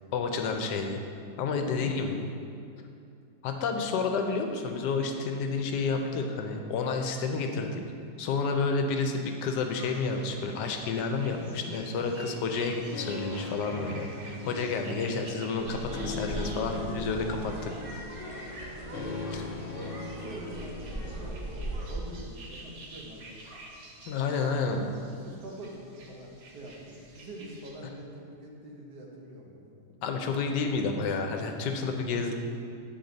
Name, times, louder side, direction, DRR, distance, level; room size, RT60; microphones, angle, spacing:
voice 1, 0.1-1.0 1.4-2.2 3.4-7.8 8.2-17.7 19.3-19.4 24.0-24.9 30.0-32.3, left 4 dB, 90° left, 4 dB, 1.3 m, -30 dB
sound 1, 9.7-27.7, right 2 dB, 60° right, 1.3 m, -50 dB
sound 2, 11.1-20.7, left 3 dB, 60° left, 0.7 m, -40 dB
sound 3, 15.6-22.0, right 1 dB, 40° right, 0.9 m, -39 dB
voice 2, 18.7-19.2 19.6-23.5 24.3-25.0 25.2-29.9 31.9-32.2, right 1 dB, 80° right, -1 dB, 1.6 m, -45 dB
8.7 x 4.6 x 3.9 m, 2.5 s
omnidirectional pair, 1.8 m